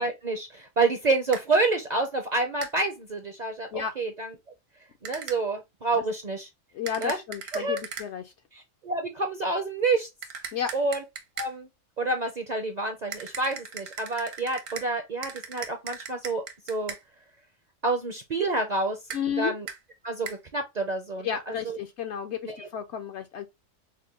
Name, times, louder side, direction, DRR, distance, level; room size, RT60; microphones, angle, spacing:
voice 1, 0.0-4.3 5.0-6.5 7.0-7.2 7.5-7.8 8.8-10.1 10.7-11.0 11.4-11.7 12.0-16.9 17.8-19.0 19.4-19.7 20.0-21.8 22.4-22.7, right 3 dB, 50° right, 0.5 m, -28 dB
sound 1, 1.3-1.5 2.6-2.8 5.0-5.4 6.9-8.1 10.2-11.5 13.1-14.9 15.2-17.0 19.1-19.2 19.7-19.8 20.3-20.4, right 7 dB, 75° right, 1.2 m, -38 dB
voice 2, 6.7-8.3 10.5-10.7 19.1-19.5 21.2-23.5, left 8 dB, 65° left, 0.8 m, -32 dB
5.1 x 2.2 x 2.8 m
omnidirectional pair, 1.4 m